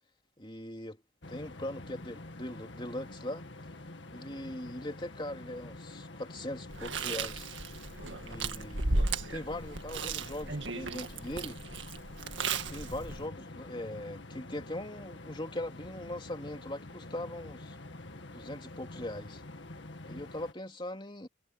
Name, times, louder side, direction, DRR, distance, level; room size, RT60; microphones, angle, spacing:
voice 1, 0.4-1.0 1.3-3.4 4.1-7.5 8.2-11.6 12.7-17.8 18.3-19.4 20.1-21.3, left 1 dB, 25° left, 3.3 m, -40 dB
sound 1, 1.2-20.5, left 2 dB, 65° left, 2.0 m, -47 dB
Chewing mastication, 6.7-13.3, right 3 dB, 70° right, 1.8 m, -35 dB
head